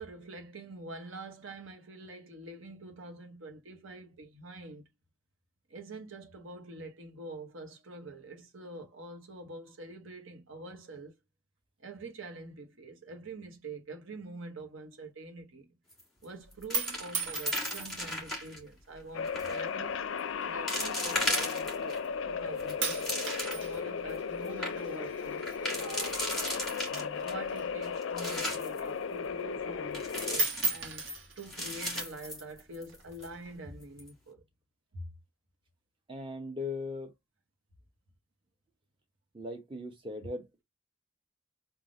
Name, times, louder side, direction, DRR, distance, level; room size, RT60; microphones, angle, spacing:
voice 1, 0.0-4.8 5.7-11.2 11.8-15.7 16.2-20.0 20.5-26.3 27.2-34.4 34.9-35.1, right 2 dB, 75° right, 1.1 m, -45 dB
sound 1, 15.9-16.2 16.5-18.6 19.2-19.6 20.2-20.3 20.7-22.0 22.5-23.7 24.1-24.2 24.4-24.7 25.4-27.3 27.8-28.8 29.9-31.1 31.5-33.0 33.2-33.3 33.8-34.1, left 1 dB, 5° left, 1.6 m, -36 dB
sound 2, 16.5-18.2 19.0-19.5 20.3-21.7 22.0-22.4 22.8-26.9 27.2-28.8 29.2-29.3 29.6-30.0 30.3-32.1 32.9-33.5, right 3 dB, 60° right, 1.4 m, -37 dB
sound 3, 19.1-30.4, left 6 dB, 70° left, 0.4 m, -36 dB
voice 2, 26.9-27.2 36.1-37.1 39.3-40.6, left 2 dB, 25° right, 0.9 m, -39 dB
3.4 x 2.4 x 3.9 m
head